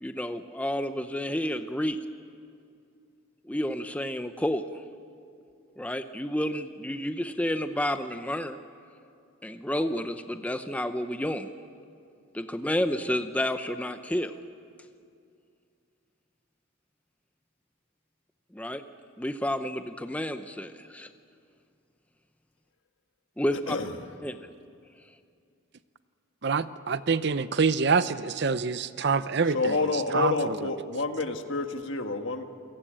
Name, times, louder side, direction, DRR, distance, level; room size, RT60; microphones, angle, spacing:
voice 1, 0.0-2.0 3.5-4.7 5.8-8.6 9.4-11.5 12.3-14.3 18.5-18.8 19.2-21.1 23.4-23.8 24.2-24.5, left 1 dB, 5° left, 9 dB, 0.7 m, -30 dB
voice 2, 26.4-29.8 30.1-30.3, right 5 dB, 55° right, 14 dB, 0.6 m, -26 dB
voice 3, 29.5-32.4, left 3 dB, 60° left, 6 dB, 1.6 m, -28 dB
28.0 x 17.5 x 8.8 m, 2.4 s
head